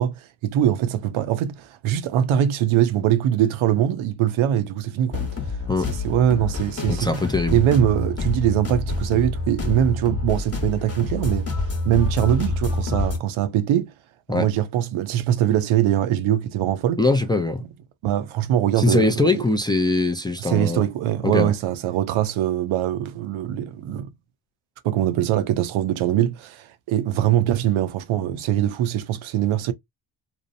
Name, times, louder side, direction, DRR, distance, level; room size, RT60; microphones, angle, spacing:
voice 1, 0.0-5.4 5.9-7.2 7.5-11.5 11.8-13.9 14.3-17.0 18.0-19.4 20.4-24.1 24.8-29.7, right 11 dB, 75° right, 0.6 m, -22 dB
sound 1, 5.1-13.2, left 3 dB, 30° left, 1.0 m, -27 dB
voice 2, 6.9-7.6 14.3-14.5 17.0-17.6 18.8-20.8 21.2-21.5, left 2 dB, 10° left, 0.3 m, -21 dB
2.6 x 2.0 x 2.6 m
cardioid pair, 65°, 49 cm